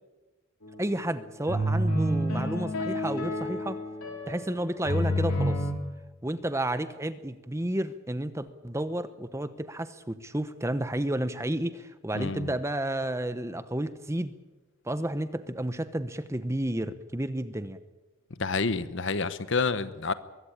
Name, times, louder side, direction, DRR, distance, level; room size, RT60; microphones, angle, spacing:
sound 1, 0.6-0.7 1.5-5.7, equal, 75° left, 4.6 m, -29 dB
voice 1, 0.8-3.8 4.3-5.7 6.2-14.3 14.8-17.8, right 1 dB, 15° right, 0.9 m, -31 dB
voice 2, 12.1-12.5 18.4-20.1, left 4 dB, 55° left, 1.0 m, -28 dB
22.5 x 16.5 x 8.8 m
head